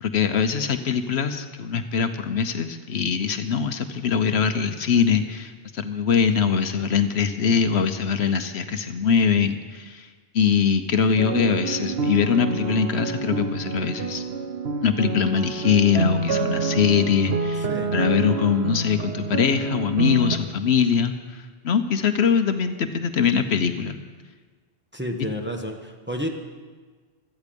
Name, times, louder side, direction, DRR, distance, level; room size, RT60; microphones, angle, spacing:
voice 1, 0.0-10.1 10.3-14.2 14.8-24.0, left 6 dB, 70° left, 9 dB, 1.1 m, -22 dB
sound 1, 11.2-20.4, right 3 dB, 70° right, 1.1 m, -27 dB
voice 2, 24.9-26.3, equal, 10° right, 2 dB, 1.2 m, -30 dB
16.5 x 13.0 x 5.2 m, 1.4 s
omnidirectional pair, 1.1 m